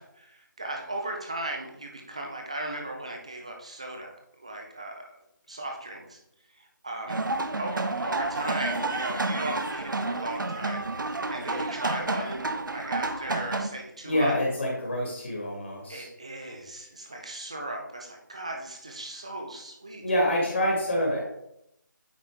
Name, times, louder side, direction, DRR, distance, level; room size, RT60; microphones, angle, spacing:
voice 1, 0.0-5.1 5.5-6.2 6.6-7.2 7.6-14.4 15.9-20.0, right 1 dB, 20° right, 2 dB, 0.6 m, -37 dB
sound 1, 7.1-13.7, right 2 dB, 75° right, 0.8 m, -30 dB
voice 2, 14.0-16.1 20.0-21.2, left 1 dB, 40° left, -2 dB, 1.7 m, -26 dB
8.9 x 4.4 x 3.5 m, 0.79 s
figure-of-eight pair, 180°, 11 cm